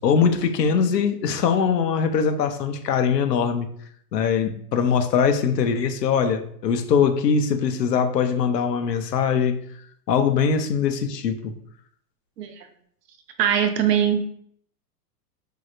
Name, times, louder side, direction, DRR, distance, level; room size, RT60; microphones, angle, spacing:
voice 1, 0.0-3.7 4.1-9.6 10.1-11.5, left 6 dB, 85° left, 0.7 m, -22 dB
voice 2, 13.4-14.2, right 9 dB, 75° right, 0.7 m, -21 dB
4.8 x 2.0 x 2.5 m
hypercardioid pair, 110°, 48 cm